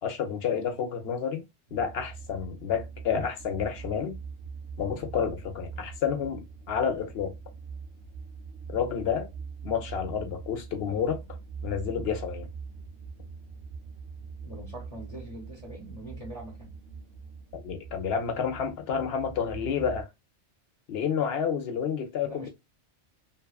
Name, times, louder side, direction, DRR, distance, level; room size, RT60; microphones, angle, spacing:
voice 1, 0.0-1.4 1.7-4.2 4.8-7.3 8.7-9.3 9.6-11.2 11.6-12.5 17.5-20.1 20.9-22.5, left 7 dB, 65° left, 0.8 m, -30 dB
sound 1, 1.7-20.0, right 5 dB, 55° right, 0.8 m, -43 dB
voice 2, 14.4-16.7 22.2-22.5, right 1 dB, 35° left, 0.8 m, -43 dB
2.8 x 2.3 x 2.3 m
omnidirectional pair, 1.2 m